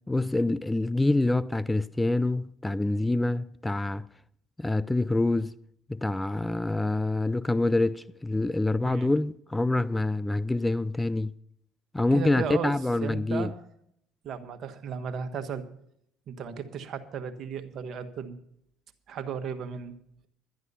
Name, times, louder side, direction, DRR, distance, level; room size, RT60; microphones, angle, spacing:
voice 1, 0.1-4.0 4.6-5.6 5.9-11.3 11.9-13.5, left 2 dB, 10° left, 0.4 m, -26 dB
voice 2, 12.1-12.7 13.0-13.6 14.2-15.6 16.3-18.4 19.1-20.0, right 7 dB, 55° right, 1.4 m, -35 dB
11.5 x 11.0 x 5.5 m
supercardioid pair, 75°, 0 cm